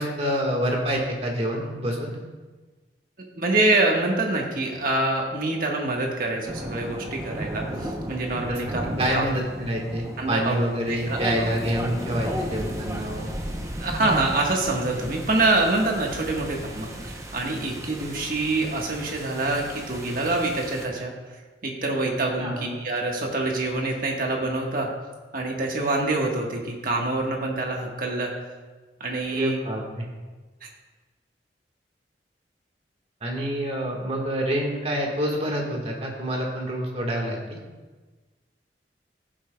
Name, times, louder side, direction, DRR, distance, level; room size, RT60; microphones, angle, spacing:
voice 1, 0.0-2.2 8.5-8.6 9.0-13.3 22.4-22.6 29.3-30.1 33.2-37.6, equal, 35° right, 0 dB, 1.5 m, -27 dB
voice 2, 3.3-9.2 10.2-10.5 10.9-11.2 13.8-21.1 21.6-24.9 25.3-28.3 29.0-29.6, right 2 dB, 50° right, 0 dB, 1.4 m, -25 dB
sound 1, 6.5-20.9, equal, 15° right, 0.7 m, -35 dB
15.0 x 7.7 x 2.3 m, 1.3 s
head